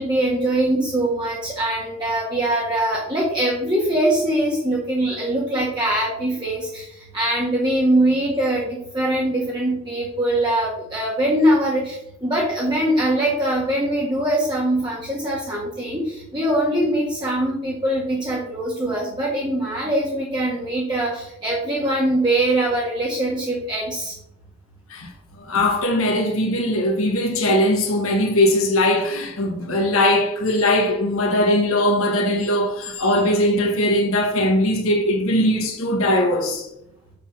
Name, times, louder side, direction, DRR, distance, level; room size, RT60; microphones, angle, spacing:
voice 1, 0.0-24.1, right 1 dB, 20° right, 1.6 m, -22 dB
voice 2, 25.4-36.7, left 1 dB, 70° left, 1.5 m, -20 dB
6.9 x 6.4 x 5.9 m
head